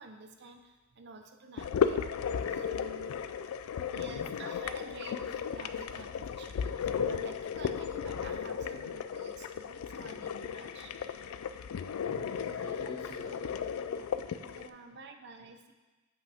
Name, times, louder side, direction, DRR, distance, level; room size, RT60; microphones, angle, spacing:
voice 1, 0.0-2.0 2.5-3.1 3.9-10.9 14.4-15.7, right 3 dB, 55° right, 6 dB, 0.6 m, -50 dB
sound 1, 1.6-14.7, left 7 dB, 85° left, 0.3 m, -35 dB
voice 2, 12.0-13.6 13.9-14.7, right 1 dB, 55° left, -5 dB, 2.2 m, -50 dB
7.8 x 5.5 x 3.5 m, 1.2 s
head